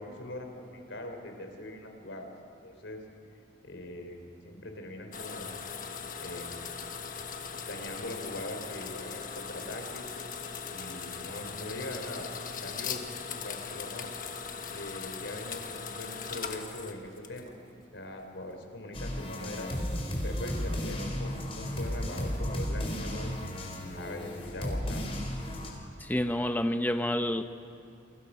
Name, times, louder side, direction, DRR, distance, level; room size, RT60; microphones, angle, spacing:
voice 1, 0.0-2.3 2.6-3.0 3.6-5.6 6.2-6.8 7.7-10.0 10.7-12.3 12.6-13.0 13.3-14.1 14.7-17.5 17.9-19.7 20.2-23.3 23.8-25.0, left 1 dB, 80° left, 4 dB, 3.6 m, -41 dB
sound 1, 5.1-17.7, left 6 dB, 45° left, 1.5 m, -39 dB
sound 2, 18.9-25.7, equal, 30° left, 3.7 m, -34 dB
voice 2, 26.0-27.4, left 1 dB, 10° left, 8 dB, 0.7 m, -28 dB
29.5 x 23.0 x 5.5 m, 2.6 s
head